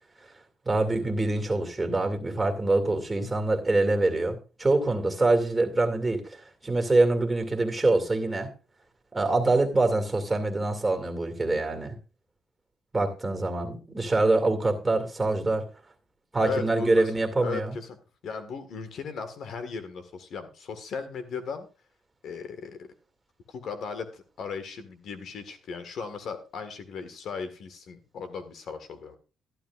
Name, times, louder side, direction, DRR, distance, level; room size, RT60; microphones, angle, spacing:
voice 1, 0.7-8.5 9.1-12.0 12.9-15.6 16.3-17.8, right 2 dB, 20° right, 4 dB, 2.3 m, -25 dB
voice 2, 16.4-17.1 17.4-18.0 18.2-21.7 22.2-22.9 23.5-29.2, left 5 dB, 65° left, 9 dB, 1.6 m, -37 dB
12.0 x 12.0 x 2.5 m, 0.32 s
cardioid pair, 90°, 0 cm